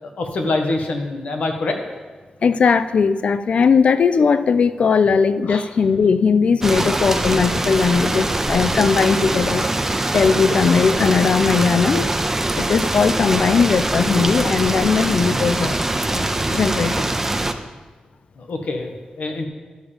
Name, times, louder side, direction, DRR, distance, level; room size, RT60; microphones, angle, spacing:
voice 1, 0.0-1.8 5.5-5.6 18.4-19.4, left 2 dB, 70° left, 3 dB, 1.4 m, -25 dB
voice 2, 2.4-9.6 10.1-12.1 12.6-17.1, left 5 dB, 55° left, 12 dB, 0.4 m, -18 dB
sound 1, 6.6-17.5, right 2 dB, 15° right, 0.5 m, -22 dB
11.0 x 7.1 x 5.2 m, 1.3 s
wide cardioid pair, 160°, 3 cm